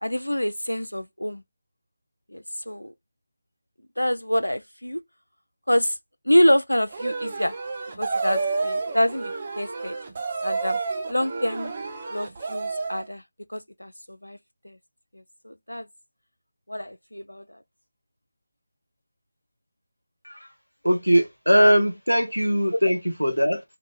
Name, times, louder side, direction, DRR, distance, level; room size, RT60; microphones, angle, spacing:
voice 1, 0.0-1.4 2.3-2.9 4.0-5.0 5.7-5.9 6.3-7.5 8.0-10.0 10.4-10.8 11.1-11.7 12.1-13.2 13.5-14.4 14.6-14.8 15.4-15.9 16.7-17.4, equal, 80° left, 0.5 m, -26 dB
sound 1, 6.9-13.1, right 4 dB, 30° right, 0.9 m, -30 dB
voice 2, 20.8-23.6, equal, 90° right, 1.3 m, -20 dB
3.7 x 2.7 x 3.7 m
figure-of-eight pair, 160°, 0 cm